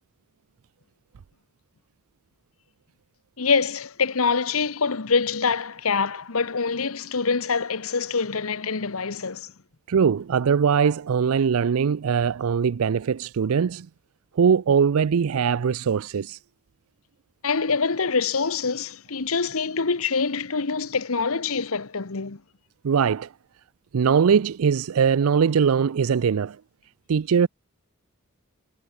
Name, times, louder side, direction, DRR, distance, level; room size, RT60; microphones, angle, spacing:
voice 1, 3.4-9.5 17.4-22.4, left 5 dB, 70° left, 1.2 m, -25 dB
voice 2, 9.9-13.9 14.4-16.4 22.8-23.3 23.9-26.6 27.1-27.5, right 6 dB, 75° right, 0.4 m, -21 dB
head